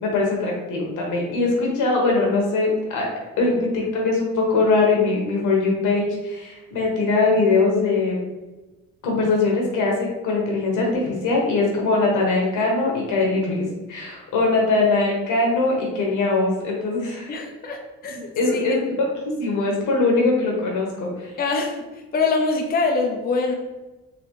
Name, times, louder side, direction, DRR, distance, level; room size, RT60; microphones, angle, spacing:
voice 1, 0.0-3.1 3.4-8.2 9.0-17.3 18.4-18.9 19.4-21.3, left 3 dB, 85° left, -1 dB, 1.2 m, -21 dB
voice 2, 17.3-18.2 18.5-18.8 21.4-21.8 22.1-23.5, left 3 dB, 30° left, 2 dB, 0.5 m, -23 dB
3.9 x 2.9 x 3.1 m, 1.1 s
cardioid pair, 90°, 30 cm